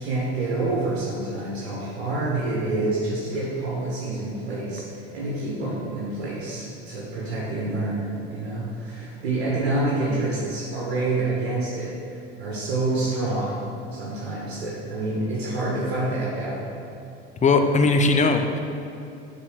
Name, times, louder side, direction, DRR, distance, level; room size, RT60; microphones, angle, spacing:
voice 1, 0.0-13.6 13.9-16.7 17.5-17.8, right 2 dB, 75° right, -5 dB, 1.9 m, -27 dB
voice 2, 17.4-18.6, left 3 dB, 25° left, 5 dB, 0.8 m, -19 dB
6.8 x 4.2 x 6.4 m, 2.7 s
hypercardioid pair, 80°, 31 cm